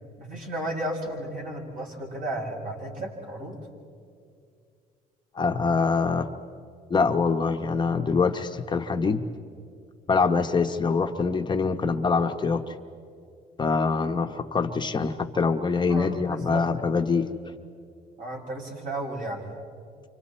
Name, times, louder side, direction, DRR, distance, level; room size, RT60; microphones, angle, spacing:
voice 1, 0.2-3.6 15.9-16.6 18.2-19.5, right 1 dB, 55° right, -1 dB, 6.6 m, -33 dB
voice 2, 5.3-6.3 6.9-9.3 10.1-12.7 13.6-17.3, left 4 dB, 25° left, 4 dB, 1.0 m, -24 dB
29.5 x 26.0 x 4.4 m, 2.3 s
cardioid pair, 110°, 17 cm